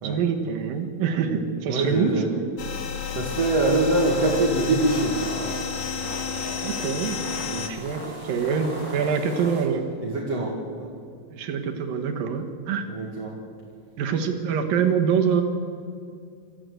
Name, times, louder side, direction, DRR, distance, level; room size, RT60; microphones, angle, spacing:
voice 1, 0.0-2.4 6.6-7.2 7.7-9.9 11.3-12.9 14.0-15.4, right 6 dB, 85° right, 5 dB, 3.3 m, -25 dB
voice 2, 1.7-2.3 3.1-5.2 7.5-7.7 10.0-10.9 12.9-13.3, right 2 dB, 50° right, -2 dB, 3.1 m, -24 dB
sound 1, 2.6-7.7, left 6 dB, 55° left, 1.9 m, -31 dB
sound 2, 3.3-9.6, right 1 dB, 30° left, 5.4 m, -38 dB
26.0 x 13.5 x 7.9 m, 2.4 s
omnidirectional pair, 3.9 m